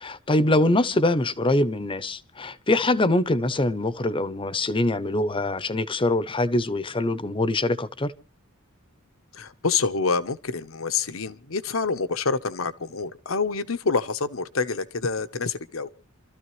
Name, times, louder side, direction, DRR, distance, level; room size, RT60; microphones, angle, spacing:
voice 1, 0.0-8.1, left 2 dB, 25° left, 0.8 m, -23 dB
voice 2, 9.3-15.9, left 4 dB, 80° left, 1.0 m, -27 dB
28.0 x 13.0 x 3.2 m
head